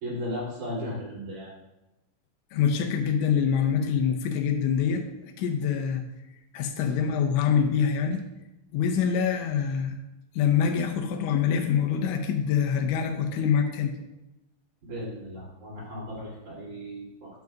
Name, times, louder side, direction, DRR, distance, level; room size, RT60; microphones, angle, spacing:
voice 1, 0.0-1.5 14.8-17.3, equal, 50° right, -7 dB, 4.0 m, -36 dB
voice 2, 2.5-5.1 5.4-6.0 6.5-8.2 8.7-9.9 10.4-13.9, left 7 dB, 85° left, 3 dB, 2.9 m, -25 dB
10.5 x 6.3 x 2.4 m, 0.96 s
omnidirectional pair, 5.3 m